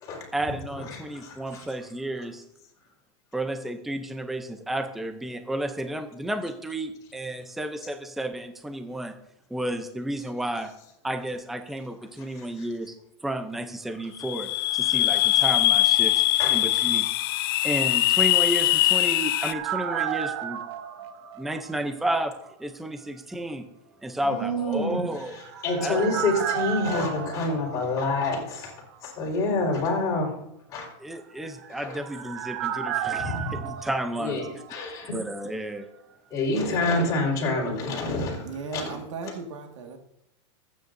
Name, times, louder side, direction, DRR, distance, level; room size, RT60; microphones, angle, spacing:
voice 1, 0.3-2.4 3.3-9.1 9.5-10.7 11.0-13.0 13.2-16.1 16.5-17.1 17.6-20.6 21.4-22.3 22.6-23.6 24.0-25.4 25.7-26.0 31.0-34.4 35.1-35.9, right 1 dB, ahead, 6 dB, 0.5 m, -32 dB
voice 2, 1.1-1.6 16.4-16.6 24.2-25.0 25.6-28.7 29.0-30.3 30.7-30.9 31.8-31.9 33.2-33.6 34.2-34.4 34.7-35.1 36.3-39.0, left 2 dB, 20° left, -3 dB, 4.3 m, -27 dB
sound 1, 14.2-19.5, left 16 dB, 50° left, 0.5 m, -22 dB
sound 2, 18.4-22.2 22.5-22.6 25.0-28.7 28.9-29.0 31.3-35.2 35.4-35.5, right 9 dB, 55° right, 1.2 m, -34 dB
voice 3, 38.4-40.0, right 5 dB, 80° right, 4 dB, 1.8 m, -36 dB
25.0 x 9.5 x 2.6 m, 0.83 s
supercardioid pair, 175°, 16 cm